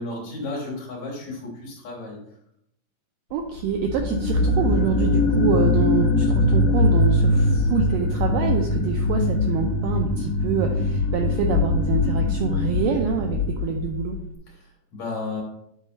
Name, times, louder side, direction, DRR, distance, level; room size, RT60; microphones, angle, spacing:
voice 1, 0.0-2.2 14.5-15.4, left 2 dB, 45° left, -2 dB, 3.9 m, -33 dB
voice 2, 3.3-14.2, right 6 dB, 80° right, 3 dB, 2.0 m, -26 dB
sound 1, 3.6-14.2, left 2 dB, 65° left, 2.0 m, -22 dB
9.3 x 4.1 x 5.3 m, 0.76 s
omnidirectional pair, 4.5 m